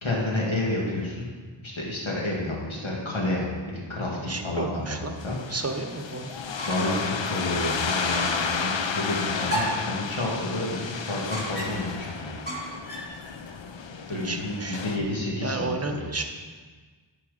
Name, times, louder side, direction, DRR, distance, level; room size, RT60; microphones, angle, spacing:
voice 1, 0.0-1.3 1.6-5.4 6.7-12.3 14.1-16.1, left 2 dB, 85° left, -4 dB, 1.9 m, -30 dB
voice 2, 4.2-5.2 5.5-6.3 14.1-15.1 15.4-16.2, right 3 dB, 30° right, 5 dB, 0.9 m, -32 dB
sound 1, 5.2-15.0, left 5 dB, 70° left, 0.7 m, -32 dB
sound 2, 6.4-7.1 7.4-7.5 8.0-8.5 9.5-9.9 11.3-11.9 12.5-13.2, right 1 dB, 20° left, 2.5 m, -33 dB
10.5 x 4.6 x 4.9 m, 1.4 s
wide cardioid pair, 40°, 46 cm